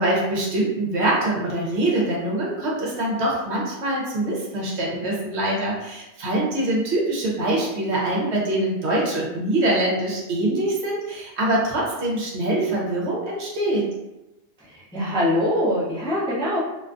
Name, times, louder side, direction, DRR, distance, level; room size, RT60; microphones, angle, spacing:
voice 1, 0.0-13.8, right 1 dB, 65° right, -4 dB, 1.0 m, -24 dB
voice 2, 14.9-16.6, left 1 dB, 10° left, -9 dB, 0.3 m, -23 dB
2.5 x 2.3 x 2.5 m, 0.97 s
omnidirectional pair, 1.3 m